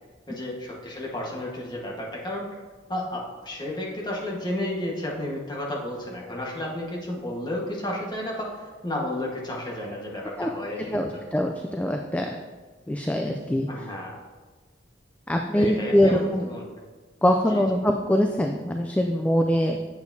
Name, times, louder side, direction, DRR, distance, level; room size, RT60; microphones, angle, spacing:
voice 1, 0.3-2.6 2.9-11.0 13.7-14.2 15.5-16.6 17.5-17.8, left 1 dB, 25° left, -3 dB, 1.3 m, -32 dB
voice 2, 10.9-12.3 12.9-13.7 15.3-16.5 17.2-19.9, equal, 10° left, 3 dB, 0.3 m, -23 dB
8.2 x 6.9 x 2.7 m, 1.3 s
head